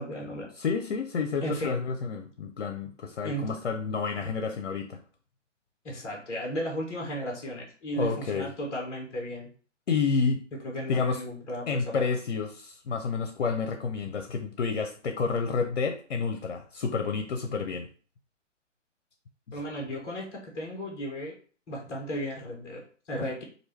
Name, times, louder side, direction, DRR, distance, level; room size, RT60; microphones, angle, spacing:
voice 1, 0.0-0.5 1.4-1.8 3.2-3.5 5.8-9.5 10.6-12.1 19.5-21.4 21.7-23.4, equal, 10° left, -2 dB, 0.6 m, -35 dB
voice 2, 0.6-5.0 8.0-8.5 9.9-10.4 10.9-11.2 11.7-17.9 19.5-19.6, left 5 dB, 60° left, 6 dB, 0.6 m, -29 dB
4.4 x 2.6 x 3.1 m, 0.41 s
figure-of-eight pair, 130°, 37 cm